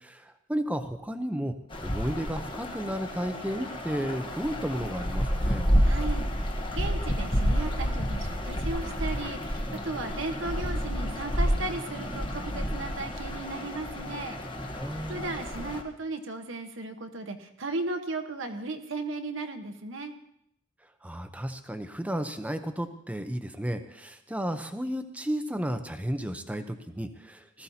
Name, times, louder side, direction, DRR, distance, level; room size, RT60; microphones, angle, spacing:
voice 1, 0.0-1.5 1.8-5.7 14.8-15.4 21.0-27.6, equal, 5° right, 8 dB, 0.7 m, -33 dB
sound 1, 1.7-15.8, equal, 25° left, 1.2 m, -30 dB
voice 2, 5.8-6.3 6.7-14.4 15.1-20.1, right 2 dB, 70° right, 6 dB, 1.2 m, -35 dB
19.0 x 14.0 x 2.8 m, 0.73 s
head